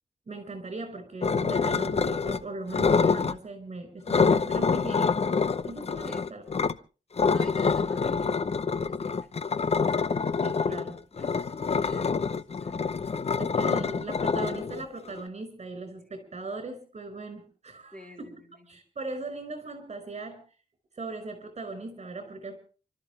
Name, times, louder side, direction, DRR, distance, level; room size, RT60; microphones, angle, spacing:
voice 1, 0.3-5.2 5.6-6.8 10.4-11.0 13.4-18.3 18.7-20.4 20.9-22.6, right 2 dB, 50° right, 9 dB, 5.0 m, -39 dB
sound 1, 1.2-2.4 2.7-3.4 4.1-6.7 7.2-15.2, left 5 dB, 50° left, 0.7 m, -26 dB
voice 2, 6.0-6.4 7.3-10.1 10.7-12.8 16.0-16.1 17.9-18.7, equal, 5° left, 1 dB, 3.5 m, -50 dB
29.5 x 13.0 x 3.3 m, 0.37 s
wide cardioid pair, 135°, 14 cm